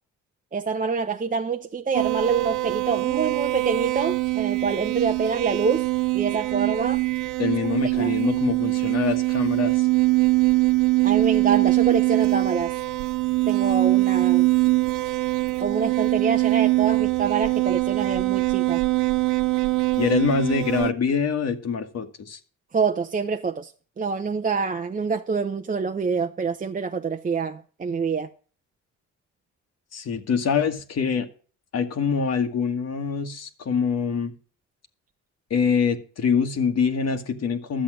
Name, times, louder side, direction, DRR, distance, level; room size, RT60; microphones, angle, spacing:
voice 1, 0.5-5.9 6.1-7.0 7.8-8.2 11.0-12.7 13.5-14.5 15.6-18.8 22.7-23.7 24.0-28.3, right 5 dB, 25° right, 0.7 m, -26 dB
sound 1, 1.9-20.9, right 21 dB, 85° right, 0.5 m, -23 dB
voice 2, 7.4-9.9 20.0-22.4 29.9-31.3 31.7-34.3 35.5-37.8, left 6 dB, 55° left, 1.7 m, -24 dB
11.5 x 7.7 x 6.2 m
cardioid pair, 90°, 30 cm